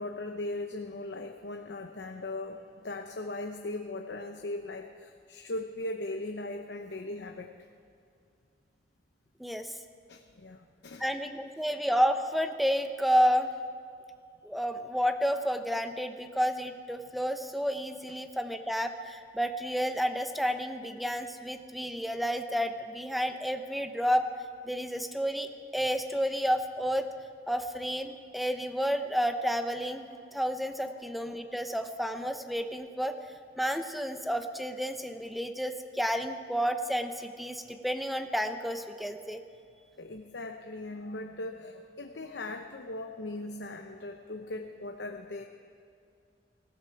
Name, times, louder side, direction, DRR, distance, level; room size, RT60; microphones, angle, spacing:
voice 1, 0.0-7.5 10.1-11.0 30.1-30.2 31.2-31.3 40.0-45.4, left 2 dB, 70° left, 4 dB, 0.8 m, -39 dB
voice 2, 9.4-9.7 11.0-13.5 14.4-24.3 24.6-25.5 25.7-27.1 27.5-33.1 33.6-39.4, equal, ahead, 7 dB, 0.7 m, -30 dB
18.5 x 16.5 x 4.7 m, 2.4 s
head